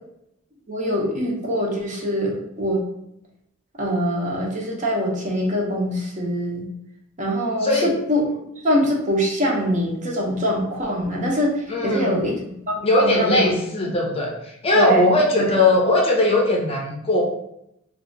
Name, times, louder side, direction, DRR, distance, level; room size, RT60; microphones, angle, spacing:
voice 1, 0.7-2.8 3.8-6.6 7.2-13.5 14.7-15.0 15.3-15.5, equal, 35° right, -2 dB, 0.7 m, -23 dB
voice 2, 7.6-7.9 11.7-12.2 12.8-17.2, left 2 dB, 25° left, 0 dB, 0.5 m, -19 dB
2.7 x 2.4 x 3.8 m, 0.79 s
head